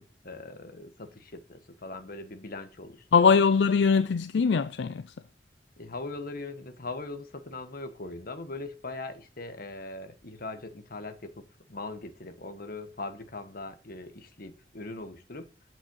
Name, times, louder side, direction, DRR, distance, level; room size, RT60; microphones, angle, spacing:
voice 1, 0.0-3.1 5.8-15.5, left 2 dB, 55° left, 1.4 m, -40 dB
voice 2, 3.1-5.1, left 5 dB, 75° left, 0.4 m, -22 dB
7.9 x 7.5 x 6.2 m
head